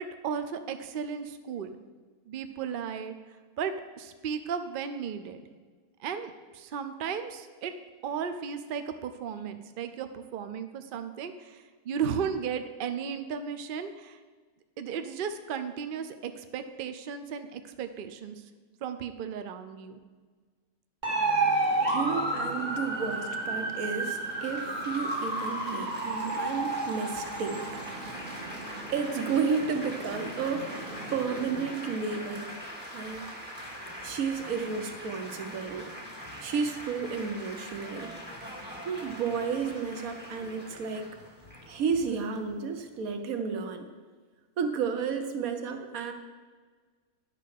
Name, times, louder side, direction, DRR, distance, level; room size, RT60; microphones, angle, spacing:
voice 1, 0.0-1.8 2.3-3.1 3.6-5.4 6.0-7.7 8.0-14.2 14.8-18.4 18.8-20.0, right 7 dB, 90° right, 9 dB, 0.4 m, -35 dB
sound 1, 21.0-31.7, right 2 dB, 30° right, 1.5 m, -32 dB
voice 2, 21.5-28.3 28.9-32.5 32.9-33.2 34.0-35.9 36.4-38.1 38.8-41.1 41.7-43.9 44.6-46.1, right 5 dB, 65° right, 7 dB, 1.2 m, -32 dB
Laughter / Applause / Chatter, 24.0-43.2, equal, 5° right, 1.4 m, -43 dB
10.5 x 4.1 x 6.5 m, 1.5 s
omnidirectional pair, 1.6 m